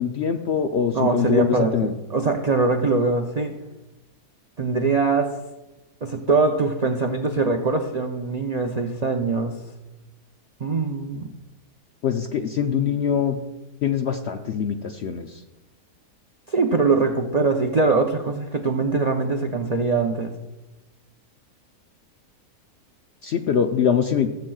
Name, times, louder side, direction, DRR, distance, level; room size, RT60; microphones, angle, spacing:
voice 1, 0.0-1.9 12.0-13.4 13.8-15.4 23.2-24.3, left 8 dB, 70° left, 5 dB, 0.6 m, -23 dB
voice 2, 0.9-3.5 4.6-5.3 6.0-9.6 10.6-11.3 16.5-20.3, right 3 dB, 75° right, 3 dB, 0.3 m, -22 dB
16.0 x 7.6 x 2.3 m, 1.0 s
omnidirectional pair, 1.6 m